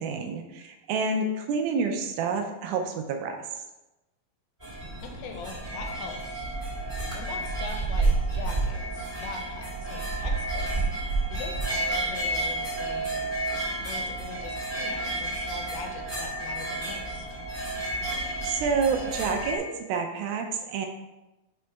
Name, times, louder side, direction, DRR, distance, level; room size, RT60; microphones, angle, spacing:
voice 1, 0.0-3.4 18.4-20.9, right 4 dB, 80° right, 4 dB, 2.3 m, -28 dB
sound 1, 4.6-19.6, right 2 dB, 35° right, 0.8 m, -30 dB
voice 2, 5.0-6.4 7.1-10.9 11.3-17.3, left 5 dB, 80° left, 3 dB, 2.4 m, -42 dB
5.1 x 4.8 x 4.4 m, 1.0 s
omnidirectional pair, 4.4 m